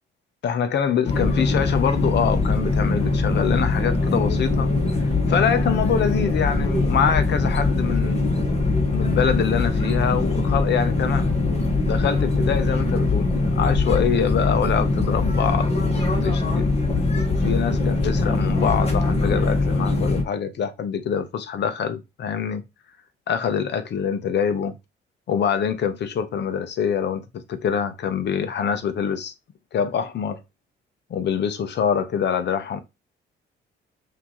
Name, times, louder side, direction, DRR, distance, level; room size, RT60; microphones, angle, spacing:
voice 1, 0.4-4.7 5.3-8.3 8.9-11.3 11.8-15.8 16.2-16.7 17.3-22.6 23.3-24.7 25.3-27.2 27.5-29.3 29.7-30.4 31.1-32.8, left 7 dB, 60° left, 0.9 m, -25 dB
sound 1, 1.1-20.2, left 3 dB, 30° left, 1.6 m, -22 dB
5.8 x 2.9 x 3.1 m
cardioid pair, 90°, 20 cm